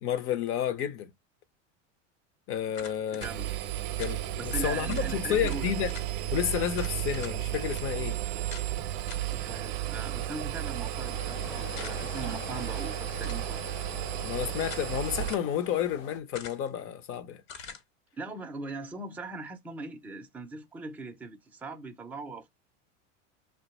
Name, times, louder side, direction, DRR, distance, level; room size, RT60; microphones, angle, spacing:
voice 1, 0.0-1.1 2.5-3.3 4.0-5.9 6.3-8.2 14.2-17.4, left 10 dB, 35° left, 0.6 m, -31 dB
sound 1, 2.7-3.3 4.0-4.2 4.6-4.7 4.9-5.1 5.4-6.1 6.7-7.4 7.7-7.8 8.5-8.7 9.1-9.4 11.8-12.2 13.1-13.5 14.2-14.9 15.3-15.5 16.3-16.8 17.5-17.8, left 6 dB, 55° left, 1.2 m, -45 dB
voice 2, 2.8-3.5 4.4-5.7 9.3-13.6 18.2-22.5, right 3 dB, 5° right, 0.5 m, -40 dB
Engine, 3.2-15.3, right 13 dB, 50° right, 0.7 m, -33 dB
sound 2, 10.1-16.2, left 8 dB, 85° left, 1.0 m, -45 dB
2.8 x 2.2 x 4.0 m
supercardioid pair, 125°, 37 cm